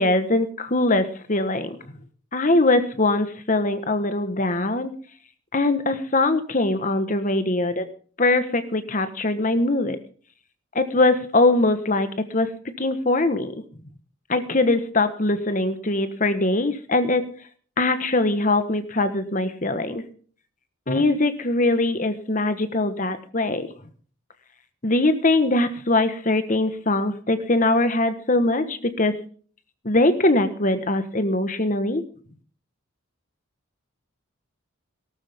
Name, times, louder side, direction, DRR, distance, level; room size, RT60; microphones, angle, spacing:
voice 1, 0.0-1.8 2.3-4.9 5.5-7.9 8.2-10.0 10.7-12.1 12.3-12.5 12.8-13.5 14.3-17.3 17.8-20.0 20.9-23.7 24.8-29.1 29.8-32.0, left 2 dB, 35° left, 10 dB, 1.3 m, -22 dB
18.5 x 12.5 x 3.6 m, 0.43 s
head